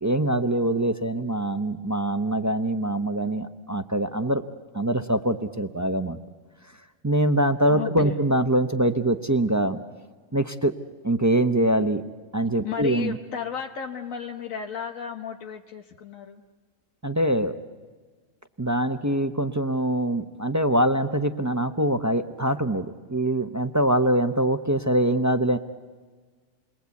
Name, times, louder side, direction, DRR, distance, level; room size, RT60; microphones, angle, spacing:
voice 1, 0.0-4.4 4.7-6.2 7.0-9.8 10.3-10.7 11.0-12.0 12.3-13.2 17.0-17.6 18.6-25.6, right 1 dB, 20° right, 8 dB, 0.5 m, -23 dB
voice 2, 7.7-8.2 12.6-16.4, left 8 dB, 80° left, 3 dB, 1.3 m, -34 dB
28.5 x 21.0 x 8.2 m, 1.4 s
omnidirectional pair, 1.4 m